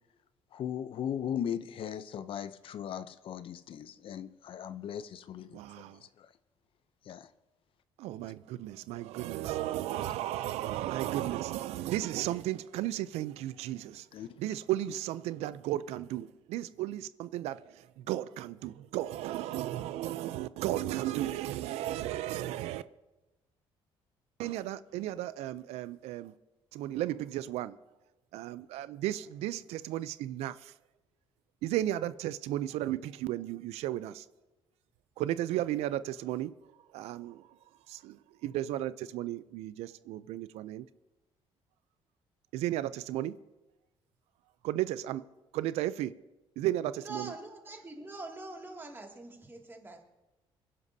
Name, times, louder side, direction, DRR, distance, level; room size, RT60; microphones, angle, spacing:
voice 1, 0.5-6.3 7.0-7.3 14.1-14.3, left 9 dB, 60° left, 0.5 m, -38 dB
voice 2, 5.5-6.0 8.0-14.1 14.4-22.8 24.4-26.3 26.7-27.8 28.3-30.7 31.6-34.3 35.2-36.5 36.9-37.5 37.9-40.9 42.5-43.3 44.6-45.2 45.5-46.1 46.6-47.3, right 14 dB, 90° right, 0.4 m, -34 dB
voice 3, 47.0-50.0, right 3 dB, 20° right, 2.2 m, -44 dB
26.0 x 11.0 x 2.7 m
cardioid pair, 105°, 11 cm